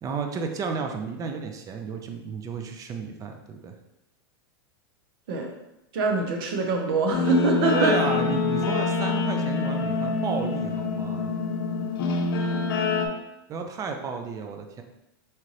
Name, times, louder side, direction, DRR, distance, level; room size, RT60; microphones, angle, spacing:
voice 1, 0.0-3.7 7.7-11.3 13.5-14.8, right 5 dB, 25° right, 5 dB, 0.5 m, -32 dB
voice 2, 5.9-7.9, right 3 dB, 70° right, 3 dB, 0.9 m, -24 dB
Guitar, 7.1-13.1, left 4 dB, 65° left, 0.6 m, -26 dB
4.3 x 2.5 x 3.2 m, 0.91 s
hypercardioid pair, 115°, 13 cm